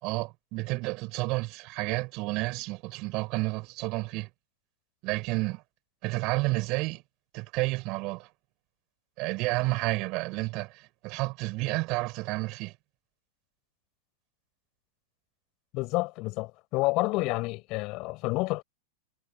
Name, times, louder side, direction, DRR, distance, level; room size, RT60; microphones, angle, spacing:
voice 1, 0.0-4.3 5.0-5.6 6.0-7.0 7.3-8.3 9.2-12.7, right 24 dB, 40° right, 5.8 m, -30 dB
voice 2, 15.7-18.6, left 23 dB, 40° left, 6.1 m, -29 dB
figure-of-eight pair, 90°, 0 cm